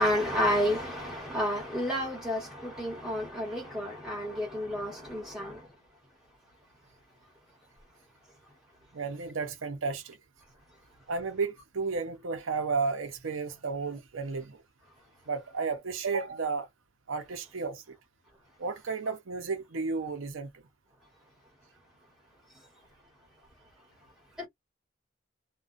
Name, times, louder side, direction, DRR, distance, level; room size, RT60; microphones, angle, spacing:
voice 1, 0.0-5.6, equal, 5° right, 1.3 m, -30 dB
voice 2, 8.9-10.2 11.1-14.6 15.3-16.7 17.1-17.8 18.6-20.5, right 4 dB, 85° right, 0.7 m, -33 dB
2.5 x 2.3 x 2.5 m
head